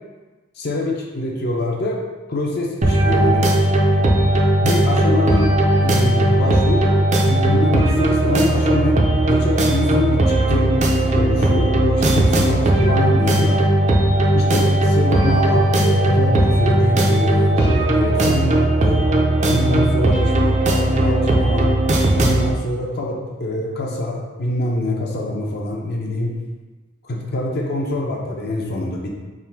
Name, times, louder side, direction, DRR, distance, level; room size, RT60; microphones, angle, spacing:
voice 1, 0.6-2.0 2.3-3.5 4.6-5.5 5.8-6.9 7.2-9.0 9.3-10.7 11.1-13.6 14.3-19.1 19.5-21.7 22.2-26.3 27.0-29.1, left 1 dB, 50° left, -1 dB, 0.6 m, -24 dB
sound 1, 2.8-22.5, right 1 dB, 35° right, 0.4 m, -17 dB
3.6 x 2.5 x 4.4 m, 1.3 s
head